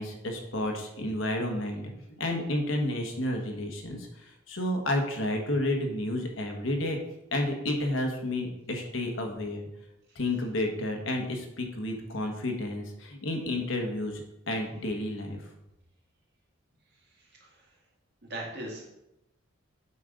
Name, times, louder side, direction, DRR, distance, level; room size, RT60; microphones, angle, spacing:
voice 1, 0.0-1.8 2.2-4.1 4.5-7.0 7.3-9.7 10.1-14.2 14.5-15.4, left 1 dB, 75° left, 3 dB, 1.3 m, -31 dB
voice 2, 16.9-17.7 18.3-18.8, right 1 dB, 55° right, -2 dB, 2.1 m, -41 dB
8.4 x 3.8 x 5.1 m, 0.89 s
head